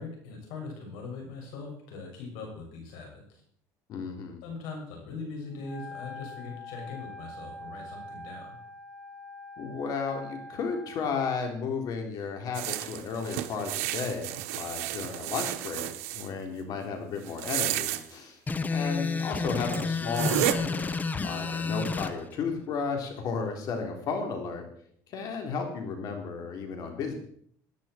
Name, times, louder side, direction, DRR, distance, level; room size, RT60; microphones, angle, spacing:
voice 1, 0.0-3.2 4.4-8.6, left 3 dB, 80° left, 1 dB, 6.4 m, -41 dB
voice 2, 3.9-4.4 9.6-15.9 16.1-18.4 18.7-20.9 21.2-24.6 25.1-27.1, left 5 dB, 55° left, 3 dB, 3.9 m, -33 dB
Wind instrument woodwind instrument, 5.6-11.2, left 2 dB, 5° right, 2.2 m, -44 dB
sound 1, 12.5-16.3 17.3-18.0 19.2-19.3 19.7-19.8 20.1-20.5, right 15 dB, 90° right, 1.0 m, -31 dB
sound 2, 18.5-22.1, left 4 dB, 20° left, 0.9 m, -30 dB
17.5 x 10.5 x 4.6 m, 0.62 s
supercardioid pair, 110°, 8 cm